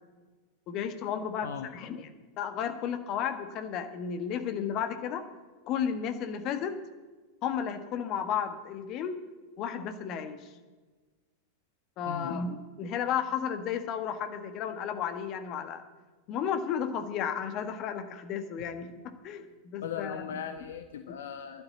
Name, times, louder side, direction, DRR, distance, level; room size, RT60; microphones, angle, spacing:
voice 1, 0.7-2.1 2.4-5.2 5.7-6.8 7.4-9.2 9.6-10.5 12.0-15.8 16.3-19.0 19.2-20.2, left 8 dB, 40° left, 8 dB, 1.4 m, -33 dB
voice 2, 19.8-21.6, left 7 dB, 60° left, 8 dB, 0.8 m, -38 dB
11.5 x 9.5 x 8.4 m, 1.3 s
figure-of-eight pair, 90°, 0 cm